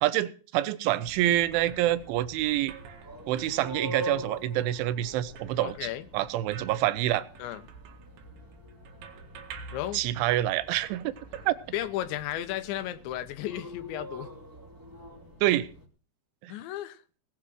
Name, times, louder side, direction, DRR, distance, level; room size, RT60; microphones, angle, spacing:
voice 1, 0.0-2.7 3.3-5.9 6.1-7.3 9.9-11.5 15.4-15.7 16.4-16.5, right 14 dB, 90° right, 15 dB, 3.3 m, -27 dB
sound 1, 1.0-15.9, equal, 5° right, 1.6 m, -45 dB
sound 2, 1.0-12.3, right 5 dB, 70° right, 4.1 m, -49 dB
voice 2, 5.6-6.1 7.4-7.6 9.7-10.0 11.7-14.3 16.5-17.0, left 12 dB, 80° left, 12 dB, 3.2 m, -34 dB
19.0 x 7.5 x 6.4 m, 0.39 s
omnidirectional pair, 5.4 m